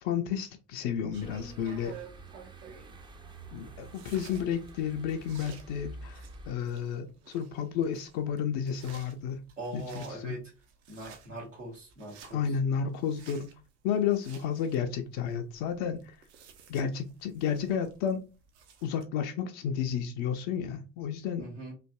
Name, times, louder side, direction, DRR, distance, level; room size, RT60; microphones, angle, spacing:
voice 1, 0.0-2.0 3.5-9.4 9.7-10.4 12.3-13.5 13.8-16.1 16.7-18.2 18.8-21.5, left 8 dB, 50° left, 0.5 m, -32 dB
sound 1, 0.8-19.0, right 7 dB, 65° right, 0.7 m, -54 dB
sound 2, 1.1-6.5, right 2 dB, 15° right, 0.4 m, -48 dB
voice 2, 9.6-10.4 10.9-12.4 21.4-21.7, right 2 dB, 90° right, 1.2 m, -41 dB
3.2 x 2.5 x 2.2 m
figure-of-eight pair, 55°, 37 cm